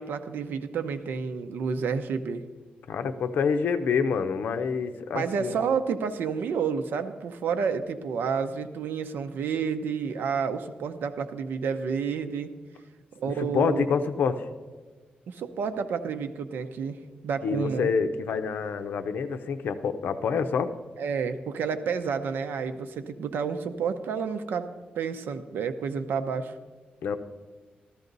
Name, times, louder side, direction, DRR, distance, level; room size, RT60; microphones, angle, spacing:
voice 1, 0.0-2.4 5.1-12.5 13.2-13.9 15.3-17.0 17.2-17.9 21.0-24.7 24.9-26.5, right 6 dB, 90° right, 9 dB, 0.8 m, -30 dB
voice 2, 2.9-5.6 13.4-14.4 17.4-20.7 27.0-27.2, left 5 dB, 75° left, 9 dB, 0.7 m, -27 dB
13.5 x 13.5 x 4.0 m, 1.4 s
wide cardioid pair, 155°, 3 cm